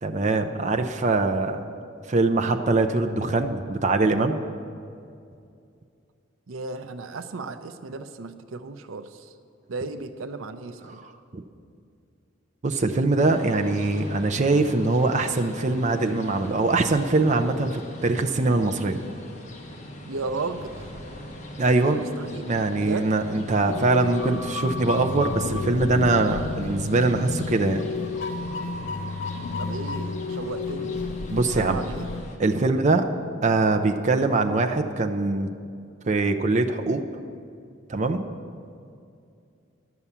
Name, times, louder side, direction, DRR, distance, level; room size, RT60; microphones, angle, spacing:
voice 1, 0.0-1.7 2.1-4.4 10.9-11.4 12.6-19.0 21.6-22.0 22.3-27.8 31.3-31.8 32.4-33.1 33.4-35.5 36.1-37.0 37.9-38.3, right 3 dB, 35° right, 5 dB, 0.5 m, -23 dB
voice 2, 6.5-9.3 9.7-11.0 20.0-20.9 22.2-22.5 22.8-23.1 29.6-30.9 31.5-32.1, right 3 dB, 80° right, 10 dB, 0.5 m, -34 dB
sound 1, 13.3-32.4, equal, 35° left, 1.2 m, -41 dB
sound 2, 23.7-32.2, left 4 dB, 60° left, 0.5 m, -31 dB
11.0 x 6.9 x 7.2 m, 2.4 s
head